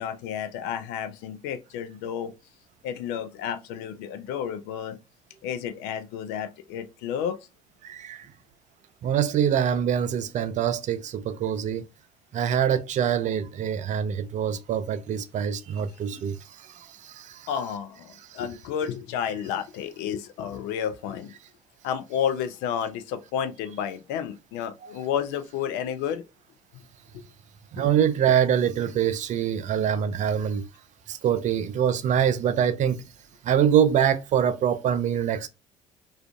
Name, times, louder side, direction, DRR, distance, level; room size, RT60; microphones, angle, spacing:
voice 1, 0.0-2.3 2.8-5.0 5.4-7.4 17.5-21.3 21.8-26.2, left 8 dB, 70° left, 0.4 m, -31 dB
voice 2, 7.8-8.3 9.0-11.8 12.3-16.4 17.0-17.5 24.8-24.9 27.7-30.7 31.1-33.0 33.4-35.5, right 9 dB, 45° right, 0.4 m, -24 dB
2.4 x 2.4 x 2.2 m
hypercardioid pair, 55°, 18 cm